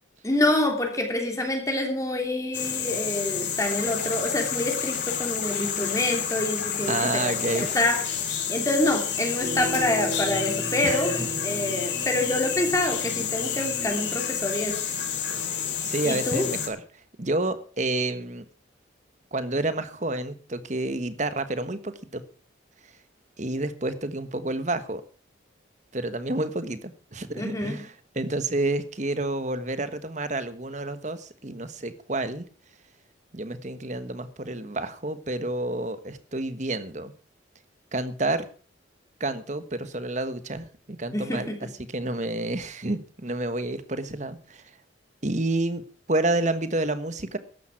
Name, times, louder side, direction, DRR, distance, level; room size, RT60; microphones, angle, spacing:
voice 1, 0.2-11.1 11.4-14.7 16.0-16.5 27.3-27.8 41.1-41.6, left 1 dB, 15° left, 3.1 m, -27 dB
sound 1, 2.5-16.7, left 8 dB, 60° left, 3.9 m, -30 dB
sound 2, 3.6-8.0, left 5 dB, 45° left, 2.1 m, -39 dB
voice 2, 6.9-7.8 10.8-11.3 15.8-16.8 17.2-18.4 19.3-22.2 23.4-25.0 25.9-32.5 33.3-37.1 37.9-38.5 39.2-44.8 45.2-45.8 46.1-47.4, right 2 dB, 40° right, 1.3 m, -29 dB
sound 3, 9.4-14.4, equal, 20° right, 2.7 m, -37 dB
14.0 x 11.0 x 6.0 m
head